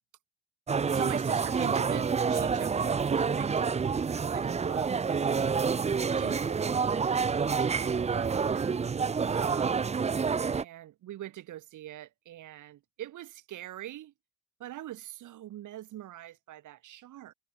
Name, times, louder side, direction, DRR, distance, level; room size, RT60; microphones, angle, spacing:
sound 1, 0.7-10.6, right 5 dB, 20° right, 0.5 m, -28 dB
voice 1, 0.8-5.7 6.1-8.8 9.3-9.8 10.5-14.1 14.6-17.3, right 13 dB, 80° right, 4.8 m, -44 dB
cardioid pair, 90°, 30 cm